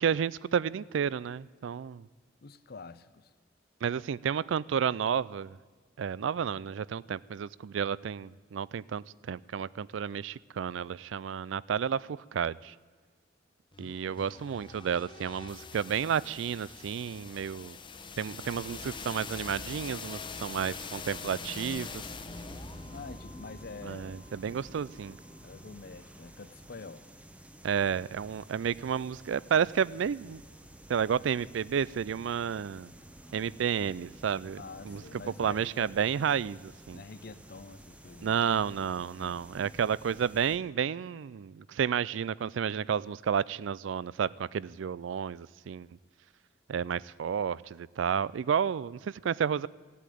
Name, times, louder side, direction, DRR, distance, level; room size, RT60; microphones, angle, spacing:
voice 1, 0.0-2.1 3.8-5.6 6.0-12.7 13.8-17.8 18.2-22.0 23.8-25.2 27.6-30.4 30.9-32.9 33.3-35.0 35.4-37.0 38.2-45.9 46.7-49.7, right 7 dB, 85° right, 21 dB, 0.4 m, -31 dB
voice 2, 2.4-3.3 13.8-13.9 22.9-24.2 25.4-27.0 34.6-35.9 36.9-38.4 39.2-39.8, left 4 dB, 55° left, 14 dB, 0.6 m, -46 dB
sound 1, 13.7-25.6, left 4 dB, 25° left, 0.9 m, -44 dB
sound 2, 22.3-40.6, right 1 dB, 5° right, 0.8 m, -51 dB
16.0 x 8.3 x 9.2 m, 1.5 s
head